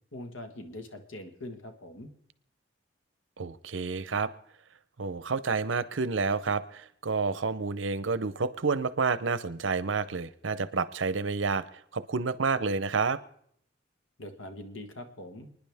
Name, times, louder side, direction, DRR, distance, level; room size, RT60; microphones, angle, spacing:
voice 1, 0.1-2.1 14.2-15.5, left 1 dB, 90° left, 6 dB, 1.5 m, -42 dB
voice 2, 3.4-4.3 5.0-11.6 11.9-13.2, right 4 dB, 75° right, 15 dB, 0.7 m, -29 dB
29.5 x 10.0 x 3.5 m, 0.69 s
head